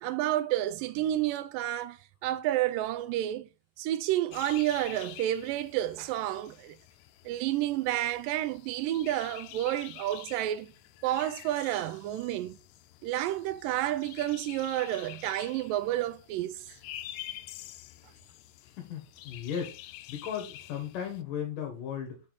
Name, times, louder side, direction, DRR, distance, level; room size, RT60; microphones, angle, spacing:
voice 1, 0.0-3.5 3.8-6.8 7.3-10.7 11.0-12.6 13.0-16.7, right 13 dB, 80° right, 2.1 m, -30 dB
sound 1, 4.3-21.2, left 14 dB, 85° left, 1.8 m, -48 dB
voice 2, 18.6-19.8 20.1-22.2, left 8 dB, 70° left, 2.8 m, -36 dB
6.8 x 5.1 x 3.9 m
omnidirectional pair, 4.2 m